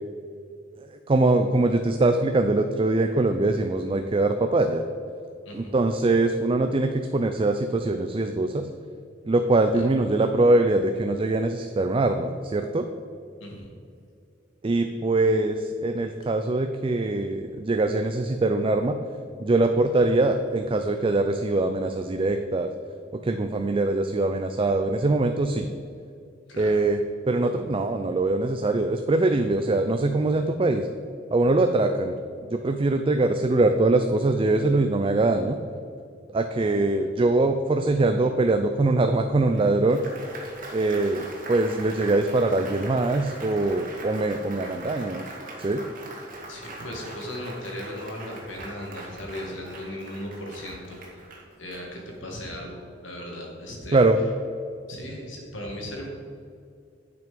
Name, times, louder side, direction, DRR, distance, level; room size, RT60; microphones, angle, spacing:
voice 1, 0.9-4.8 5.5-8.7 9.2-12.9 14.6-19.0 19.4-22.7 23.1-25.7 26.6-27.0 27.3-30.9 31.3-32.2 32.4-35.6 36.3-40.0 40.7-45.2 45.6-45.8 53.9-54.2, right 2 dB, 30° right, 7 dB, 0.4 m, -23 dB
voice 2, 26.5-26.8 46.5-51.2 51.6-54.0 54.9-56.2, left 1 dB, 90° left, -1 dB, 2.4 m, -37 dB
Applause, 39.5-52.3, right 2 dB, 45° right, 1.9 m, -41 dB
10.5 x 6.0 x 5.2 m, 2.4 s
head